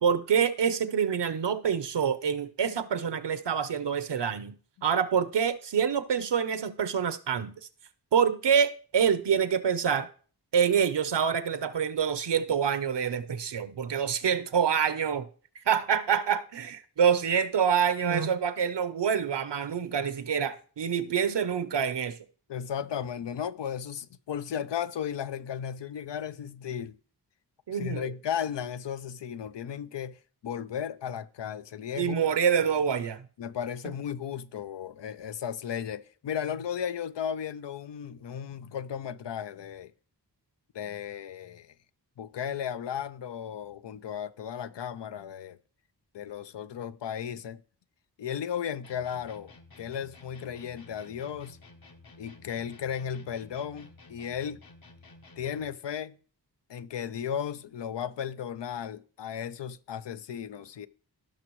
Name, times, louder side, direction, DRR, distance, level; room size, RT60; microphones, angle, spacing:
voice 1, 0.0-4.6 4.8-7.5 8.1-10.1 10.5-15.3 15.5-22.2 27.7-28.1 32.0-33.3 33.8-33.9, right 7 dB, 80° right, 0.8 m, -26 dB
voice 2, 22.5-27.0 27.7-32.2 33.4-39.9 40.7-41.7 42.2-45.6 46.1-47.6 48.2-51.6 52.2-54.6 55.4-56.2 56.7-60.9, left 8 dB, 85° left, 0.6 m, -35 dB
sound 1, 48.8-55.8, left 2 dB, 60° left, 1.1 m, -53 dB
17.0 x 6.0 x 3.1 m
wide cardioid pair, 60°, 41 cm